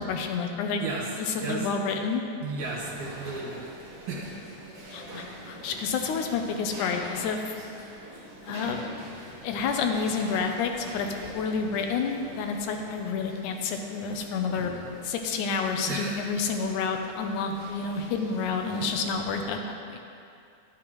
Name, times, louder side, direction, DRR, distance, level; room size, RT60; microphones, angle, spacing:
voice 1, 0.0-0.9 1.1-2.2 4.9-7.6 8.4-8.8 9.4-11.1 11.3-14.7 15.0-20.0, left 5 dB, 85° left, 4 dB, 2.2 m, -29 dB
voice 2, 2.4-3.6 4.1-4.3 15.9-16.2, right 3 dB, 75° right, -3 dB, 2.8 m, -33 dB
sound 1, 2.6-19.4, right 1 dB, 45° right, 2.5 m, -44 dB
12.0 x 8.5 x 3.1 m, 2.5 s
omnidirectional pair, 3.5 m